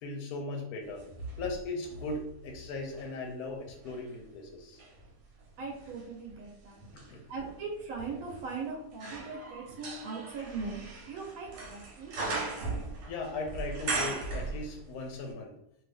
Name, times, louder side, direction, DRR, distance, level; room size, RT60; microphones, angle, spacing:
voice 1, 0.0-1.0 1.4-4.8 6.9-7.2 13.1-15.5, left 2 dB, 70° left, 2 dB, 1.0 m, -38 dB
sound 1, 0.9-3.1 3.7-15.0 15.3-15.4, right 3 dB, 90° right, 1.3 m, -39 dB
voice 2, 5.6-6.8 7.3-10.8 11.1-12.1, right 4 dB, 65° right, -2 dB, 1.1 m, -39 dB
2.7 x 2.4 x 3.4 m, 0.73 s
omnidirectional pair, 1.7 m